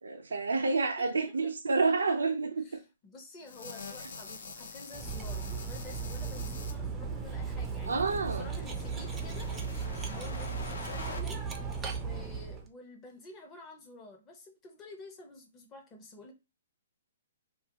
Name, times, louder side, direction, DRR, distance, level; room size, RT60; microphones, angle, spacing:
voice 1, 0.0-2.8 4.0-4.1 7.9-8.5, right 3 dB, 90° right, 0.4 m, -29 dB
voice 2, 1.0-1.3 2.6-8.0 8.2-9.5 10.0-11.4 11.9-16.3, left 2 dB, 20° left, 0.7 m, -50 dB
sound 1, 3.4-6.7 7.9-11.2, left 3 dB, 70° left, 0.6 m, -45 dB
Cutlery silverware, 4.9-12.7, right 5 dB, 10° right, 0.4 m, -36 dB
2.3 x 2.2 x 2.8 m
hypercardioid pair, 145°, 0 cm